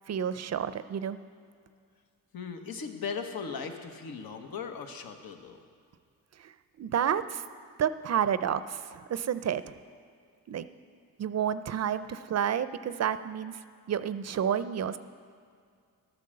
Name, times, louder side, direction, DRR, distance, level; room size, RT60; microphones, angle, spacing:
voice 1, 0.1-1.2 6.4-7.4 7.8-9.8 10.5-10.7 11.2-13.6 13.9-15.0, right 8 dB, 45° right, 13 dB, 0.5 m, -30 dB
voice 2, 2.3-5.6, left 5 dB, 80° left, 5 dB, 1.3 m, -38 dB
12.5 x 9.5 x 6.5 m, 2.2 s
cardioid pair, 110°, 36 cm